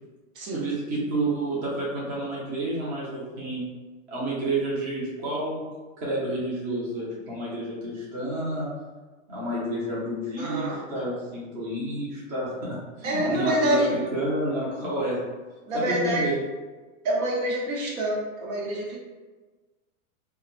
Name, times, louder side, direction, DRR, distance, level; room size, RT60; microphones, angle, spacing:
voice 1, 0.5-3.6 4.1-5.6 6.0-8.7 9.3-15.2 15.7-16.4, right 1 dB, 20° right, -7 dB, 0.5 m, -30 dB
voice 2, 10.4-10.8 13.0-13.9 15.7-16.3 17.0-19.0, right 1 dB, 75° right, -3 dB, 0.9 m, -26 dB
2.2 x 2.0 x 2.9 m, 1.3 s
hypercardioid pair, 145°, 41 cm